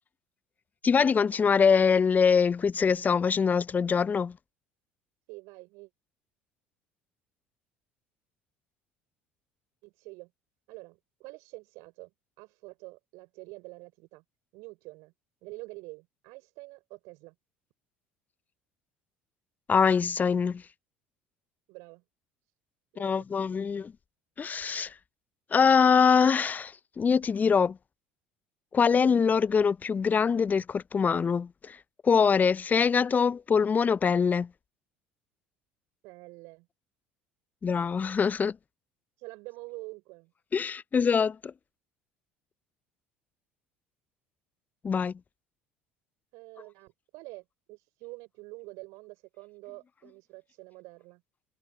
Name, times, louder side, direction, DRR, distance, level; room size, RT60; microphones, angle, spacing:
voice 1, 0.8-4.4 19.7-20.6 23.0-23.9 24.4-24.9 25.5-27.8 28.7-31.8 32.0-34.5 37.6-38.6 40.5-41.5 44.8-45.2, left 6 dB, 30° left, 0.8 m, -24 dB
voice 2, 5.3-5.9 9.8-10.3 10.7-12.1 12.4-14.2 14.5-15.1 15.4-17.3 21.7-22.0 22.9-23.1 36.0-36.7 39.2-40.3 46.3-51.2, right 25 dB, 60° right, 5.0 m, -46 dB
figure-of-eight pair, 60°, 6 cm